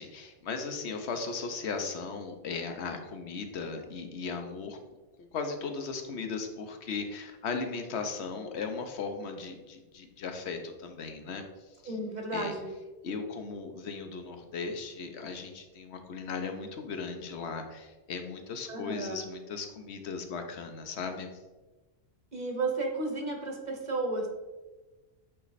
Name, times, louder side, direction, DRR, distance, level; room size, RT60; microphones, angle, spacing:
voice 1, 0.0-4.8 5.2-11.5 11.8-11.9 12.3-12.5 13.0-21.3, left 4 dB, 90° left, 5 dB, 1.1 m, -37 dB
voice 2, 11.8-12.7 18.7-19.2 22.3-24.3, right 2 dB, 45° right, 2 dB, 1.1 m, -33 dB
8.3 x 3.2 x 4.0 m, 1.2 s
omnidirectional pair, 1.1 m